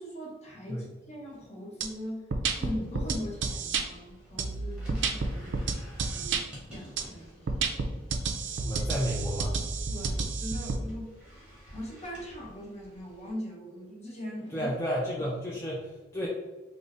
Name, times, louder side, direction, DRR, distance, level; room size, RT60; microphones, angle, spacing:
voice 1, 0.0-7.7 8.7-8.8 9.9-14.7, equal, 35° left, -3 dB, 1.0 m, -41 dB
sound 1, 1.8-1.9 2.3-3.8 4.4-6.4 7.0-7.1 7.5-10.8, right 4 dB, 75° right, 0.4 m, -30 dB
sound 2, 2.8-13.3, equal, 5° right, 1.2 m, -50 dB
voice 2, 8.6-9.6 14.5-16.3, equal, 15° left, -5 dB, 0.4 m, -32 dB
3.5 x 2.0 x 3.8 m, 1.2 s
head